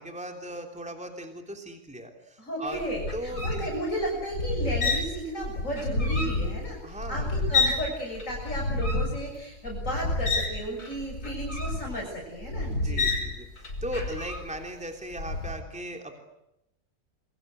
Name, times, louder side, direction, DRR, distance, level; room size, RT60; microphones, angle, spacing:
voice 1, 0.0-2.8 3.1-3.6 6.8-7.7 12.7-16.3, right 1 dB, 5° right, 4 dB, 3.4 m, -38 dB
voice 2, 2.4-13.0, equal, 55° left, -1 dB, 7.2 m, -34 dB
sound 1, 2.7-7.9 8.1-14.7 15.1-15.5, left 3 dB, 75° left, 6.1 m, -29 dB
27.5 x 24.0 x 8.2 m, 0.84 s
omnidirectional pair, 1.6 m